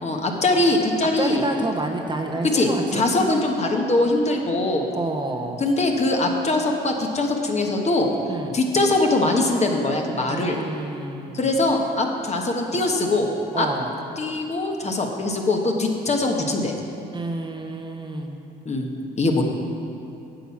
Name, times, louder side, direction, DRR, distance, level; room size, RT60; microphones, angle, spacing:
voice 1, 0.0-1.6 2.4-4.9 5.6-8.1 8.5-10.6 11.3-13.3 13.6-13.7 14.2-16.7 18.6-18.9 19.2-19.4, left 2 dB, 35° left, 2 dB, 1.3 m, -22 dB
voice 2, 1.2-3.3 4.9-5.6 8.3-8.6 10.3-11.6 13.5-13.9 17.1-18.4, right 2 dB, 25° right, 2 dB, 1.0 m, -29 dB
9.0 x 7.0 x 5.8 m, 2.7 s
supercardioid pair, 65°, 20 cm